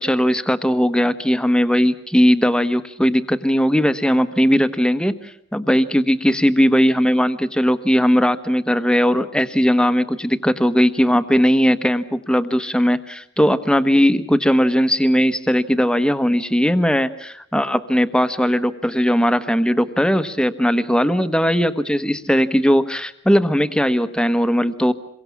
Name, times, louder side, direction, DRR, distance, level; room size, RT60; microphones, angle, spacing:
voice 1, 0.0-24.9, equal, 5° left, 11 dB, 1.2 m, -18 dB
28.0 x 23.0 x 7.3 m, 0.70 s
head